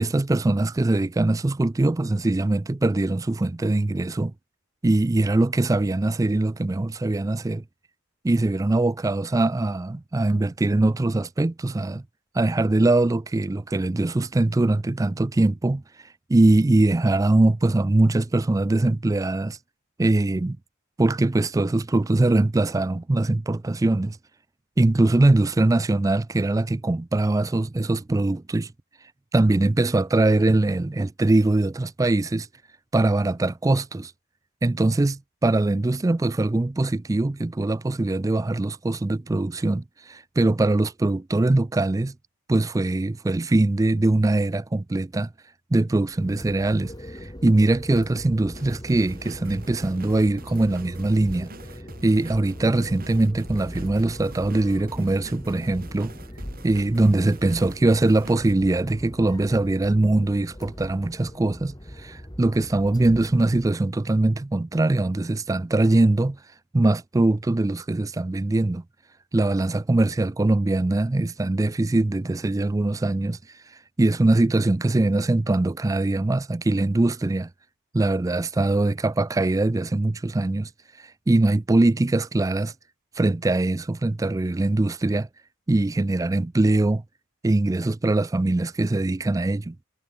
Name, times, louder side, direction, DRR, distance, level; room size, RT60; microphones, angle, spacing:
voice 1, 0.0-4.3 4.8-7.6 8.2-12.0 12.3-15.8 16.3-19.6 20.0-20.6 21.0-24.2 24.8-28.7 29.3-32.5 32.9-34.1 34.6-42.1 42.5-45.3 45.7-46.9 47.2-51.5 52.0-56.1 56.6-66.4 66.7-68.8 69.3-73.4 74.0-77.5 77.9-80.7 81.3-82.7 83.2-85.3 85.7-87.0 87.4-89.8, right 2 dB, 15° right, 0.3 m, -22 dB
sound 1, 46.1-63.7, equal, 20° left, 3.0 m, -41 dB
sound 2, 48.5-58.6, right 2 dB, 45° right, 3.3 m, -45 dB
head